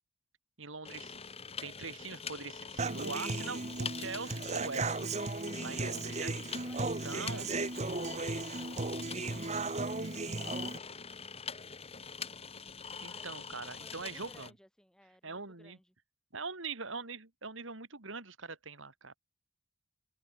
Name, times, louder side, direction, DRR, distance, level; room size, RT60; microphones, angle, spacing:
voice 1, 0.6-1.2 1.6-5.1 5.6-6.6 6.8-7.5 13.0-14.5 15.2-15.8 16.3-19.1, right 4 dB, 70° right, 3.1 m, -42 dB
sound 1, 0.8-14.5, left 6 dB, 30° left, 2.2 m, -44 dB
Human voice / Acoustic guitar, 2.8-10.8, right 3 dB, 35° right, 1.4 m, -36 dB
voice 2, 6.6-8.0 13.0-13.3 13.8-15.9, equal, 5° left, 6.3 m, -61 dB
open air
head